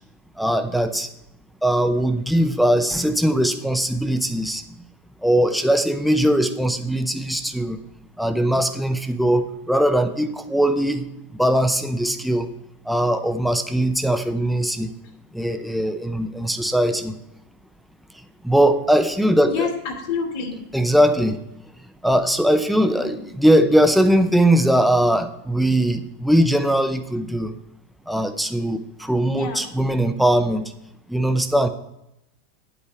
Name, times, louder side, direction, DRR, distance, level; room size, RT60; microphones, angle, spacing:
voice 1, 0.4-1.1 1.6-4.6 5.2-7.8 8.2-11.1 11.4-12.5 12.9-14.9 15.3-17.1 18.4-19.7 20.7-21.4 22.0-27.5 28.1-30.7 31.1-31.7, right 1 dB, ahead, 7 dB, 0.6 m, -20 dB
voice 2, 19.5-20.6 22.9-23.2 29.3-29.6, left 5 dB, 65° left, 1 dB, 2.3 m, -28 dB
9.4 x 8.3 x 3.4 m, 0.85 s
hypercardioid pair, 120°, 0 cm